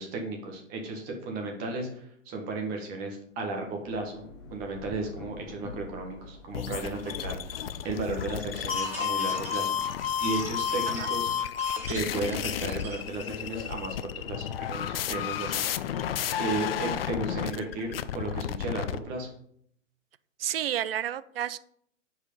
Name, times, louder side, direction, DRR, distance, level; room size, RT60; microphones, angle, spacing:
voice 1, 0.0-9.7 10.2-11.3 11.9-15.6 15.9-19.3, right 3 dB, 20° right, 2 dB, 1.5 m, -34 dB
Thunder / Rain, 3.5-12.4 12.9-14.3, left 3 dB, 20° left, 1.2 m, -46 dB
sound 1, 6.5-19.0, left 9 dB, 50° left, 0.5 m, -32 dB
sound 2, 8.5-13.1, right 1 dB, 5° right, 2.0 m, -42 dB
voice 2, 20.4-21.6, right 11 dB, 50° right, 16 dB, 0.4 m, -31 dB
8.3 x 4.9 x 5.4 m, 0.68 s
hypercardioid pair, 150°, 39 cm